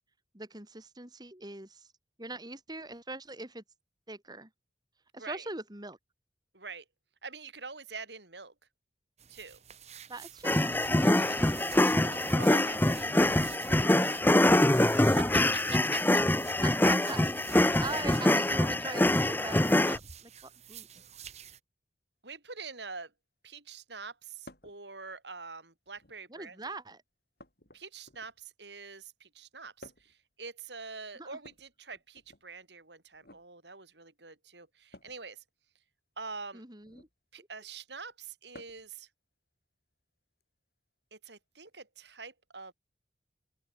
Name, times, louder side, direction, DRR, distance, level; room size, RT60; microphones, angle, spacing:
voice 1, 0.3-1.9 2.2-3.6 4.1-4.5 5.1-6.0 10.1-10.6 12.2-13.0 15.0-15.1 16.6-20.9 26.3-27.0 31.2-31.4 36.5-37.1 37.4-37.5, right 2 dB, 25° right, 4.0 m, -42 dB
voice 2, 5.1-5.5 6.5-6.8 7.2-8.5 9.3-9.6 12.0-16.3 22.2-23.1 23.4-26.7 27.7-35.4 36.2-36.6 37.3-39.1 41.1-42.7, right 4 dB, 80° right, 7.8 m, -45 dB
sound 1, 9.2-21.6, right 9 dB, 40° right, 2.9 m, -49 dB
sound 2, 10.4-20.0, left 1 dB, 10° left, 0.8 m, -24 dB
sound 3, 24.5-24.8 25.9-26.4 27.4-28.5 29.8-30.2 31.4-32.4 33.1-33.5 34.9-35.2 36.8-37.2 38.5-38.9 40.4-40.5 41.7-41.8, left 1 dB, 60° left, 7.2 m, -54 dB
open air
head